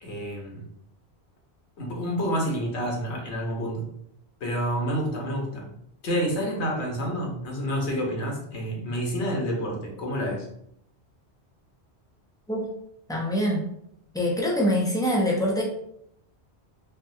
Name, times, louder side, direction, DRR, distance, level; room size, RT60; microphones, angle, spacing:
voice 1, 0.0-0.6 1.8-3.9 4.4-5.7 6.0-10.5, equal, 80° left, -1 dB, 1.1 m, -29 dB
voice 2, 13.1-13.6 14.1-15.6, equal, 5° left, -3 dB, 0.3 m, -24 dB
3.4 x 2.2 x 2.6 m, 0.72 s
omnidirectional pair, 1.1 m